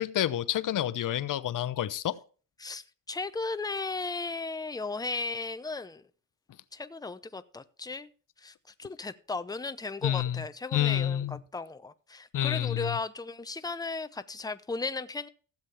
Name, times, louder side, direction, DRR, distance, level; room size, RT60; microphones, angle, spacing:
voice 1, 0.0-2.2 10.0-10.4 10.7-11.4 12.3-13.0, left 11 dB, 65° left, 0.8 m, -29 dB
voice 2, 2.6-6.0 6.7-8.1 8.4-15.3, left 3 dB, 10° left, 0.7 m, -36 dB
16.0 x 7.5 x 3.4 m
cardioid pair, 90°, 34 cm